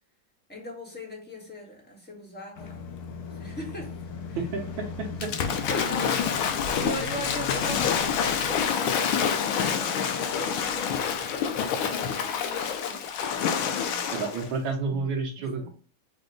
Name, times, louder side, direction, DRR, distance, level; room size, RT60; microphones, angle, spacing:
voice 1, 0.5-2.8 3.3-3.9 4.3-4.4 5.7-11.0 11.7-13.1 13.8-14.1 15.6-15.7, equal, 5° left, 0.9 m, -40 dB
sound 1, 2.5-8.7, left 4 dB, 65° left, 1.0 m, -38 dB
voice 2, 4.4-5.3 14.1-15.7, right 4 dB, 75° right, 1.6 m, -30 dB
Waves surf / Splash splatter, 5.2-14.5, left 7 dB, 85° left, 1.4 m, -27 dB
6.3 x 2.2 x 3.8 m
omnidirectional pair, 2.1 m